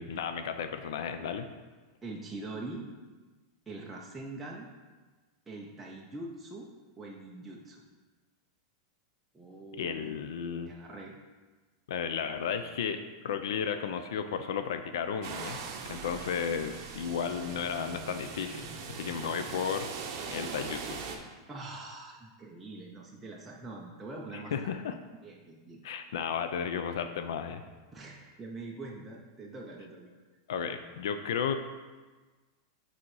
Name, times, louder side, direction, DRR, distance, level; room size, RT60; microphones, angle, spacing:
voice 1, 0.0-1.5 9.8-10.7 11.9-15.6 15.9-19.9 20.3-21.0 24.3-24.9 25.8-27.6 30.5-31.6, left 7 dB, 75° left, 8 dB, 0.5 m, -34 dB
voice 2, 2.0-2.9 3.7-4.7 5.5-6.7 7.0-7.8 9.3-11.1 21.5-24.7 25.2-25.8 27.9-30.1, right 2 dB, 5° right, -3 dB, 0.4 m, -43 dB
sound 1, 15.2-21.2, right 5 dB, 40° right, 0.7 m, -41 dB
6.2 x 4.2 x 4.7 m, 1.3 s
supercardioid pair, 180°, 2 cm